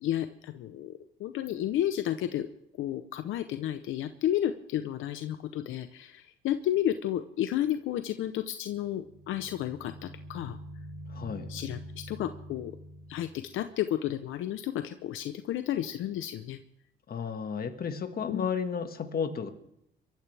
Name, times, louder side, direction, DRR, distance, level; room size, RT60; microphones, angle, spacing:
voice 1, 0.0-2.5 2.8-10.6 11.5-12.7 13.1-16.6 18.3-18.5, left 11 dB, 85° left, 9 dB, 0.8 m, -32 dB
sound 1, 8.8-13.6, equal, 55° right, 2.3 m, -45 dB
voice 2, 11.1-11.5 17.1-19.5, left 6 dB, 50° left, 7 dB, 1.7 m, -33 dB
24.5 x 14.0 x 3.4 m, 0.76 s
cardioid pair, 90°, 20 cm